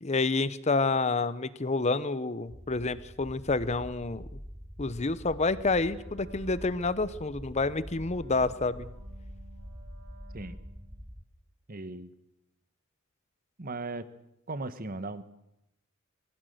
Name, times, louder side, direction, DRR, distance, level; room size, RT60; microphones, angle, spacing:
voice 1, 0.0-4.3 4.8-8.9, left 3 dB, 30° left, 16 dB, 0.8 m, -28 dB
sound 1, 2.5-11.3, equal, 5° right, 1.2 m, -45 dB
Wind instrument woodwind instrument, 5.9-11.0, right 2 dB, 75° right, 7.4 m, -57 dB
voice 2, 11.7-12.1 13.6-14.1 14.5-15.2, right 2 dB, 45° right, 13 dB, 1.2 m, -37 dB
21.0 x 16.0 x 7.9 m, 0.84 s
head